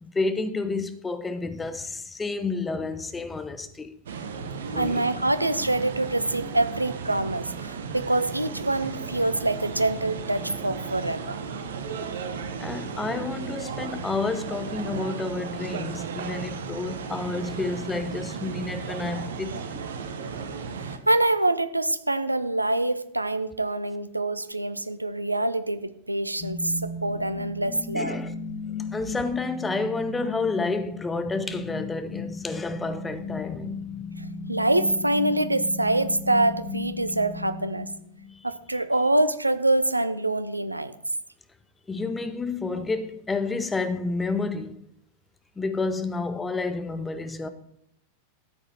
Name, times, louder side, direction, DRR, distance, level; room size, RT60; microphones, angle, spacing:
voice 1, 0.0-3.9 4.7-5.1 12.6-19.8 27.9-28.3 28.9-34.0 38.3-38.5 41.9-44.8 45.6-47.5, left 3 dB, 10° left, 1.0 m, -30 dB
sound 1, 4.1-21.0, right 5 dB, 60° right, 1.2 m, -35 dB
voice 2, 4.8-11.4 20.7-28.2 34.2-37.9 38.4-40.9, right 2 dB, 85° right, 0.7 m, -25 dB
sound 2, 26.4-38.4, left 3 dB, 30° left, 1.2 m, -36 dB
13.0 x 7.9 x 4.7 m
figure-of-eight pair, 90°, 0 cm